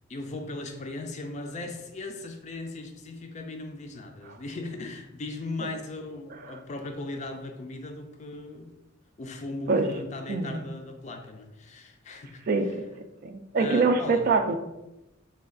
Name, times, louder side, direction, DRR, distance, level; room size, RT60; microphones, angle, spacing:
voice 1, 0.1-8.8 9.2-12.7 13.6-14.3, left 2 dB, 35° left, 5 dB, 0.4 m, -38 dB
voice 2, 12.5-12.8 13.2-14.6, right 4 dB, 45° right, 6 dB, 0.3 m, -24 dB
3.3 x 2.3 x 3.7 m, 0.94 s
head